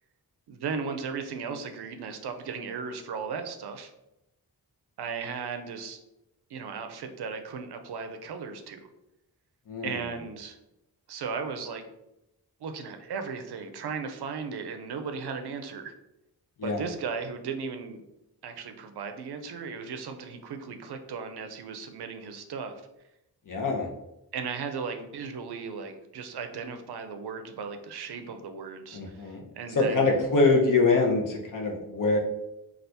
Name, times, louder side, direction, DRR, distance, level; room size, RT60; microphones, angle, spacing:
voice 1, 0.5-3.9 5.0-6.0 6.5-8.9 9.8-10.6 11.1-11.9 12.6-15.9 16.6-18.0 18.4-22.7 24.3-30.2, right 5 dB, 80° right, 7 dB, 0.5 m, -36 dB
voice 2, 23.5-23.9 28.9-29.4 29.7-32.2, left 3 dB, 55° left, 1 dB, 0.7 m, -24 dB
2.7 x 2.4 x 3.3 m, 0.88 s
wide cardioid pair, 140°, 39 cm